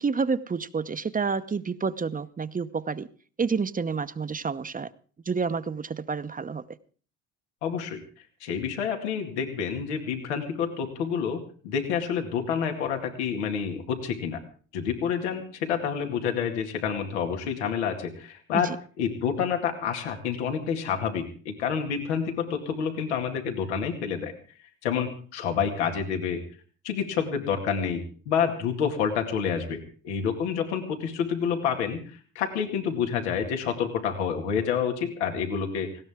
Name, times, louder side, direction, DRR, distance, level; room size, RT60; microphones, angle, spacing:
voice 1, 0.0-3.1 3.4-4.9 5.3-6.6 18.5-18.6, right 5 dB, 25° right, 12 dB, 0.9 m, -29 dB
voice 2, 7.6-8.0 8.4-14.4 14.7-24.3 24.8-26.4 26.8-32.0 32.4-35.9, left 7 dB, 90° left, 4 dB, 2.3 m, -28 dB
19.0 x 17.0 x 3.6 m, 0.42 s
hypercardioid pair, 65°, 33 cm